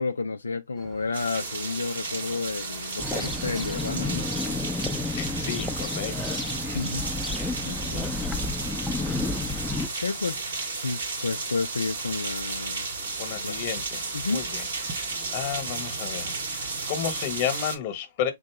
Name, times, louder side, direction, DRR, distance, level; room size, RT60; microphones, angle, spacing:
voice 1, 0.0-4.3 6.7-7.1 7.6-8.1 10.0-12.9 13.4-13.6 14.1-14.4, left 4 dB, 85° left, 0.3 m, -31 dB
sound 1, 0.7-17.5, right 4 dB, 30° right, 0.9 m, -48 dB
sound 2, 1.1-17.8, right 3 dB, 75° right, 2.5 m, -33 dB
sound 3, 3.0-9.9, left 3 dB, 5° left, 0.5 m, -31 dB
voice 2, 5.0-6.6 7.9-8.3 13.2-14.0 14.3-18.3, left 9 dB, 45° left, 1.1 m, -33 dB
3.8 x 2.7 x 3.4 m
figure-of-eight pair, 110°, 0 cm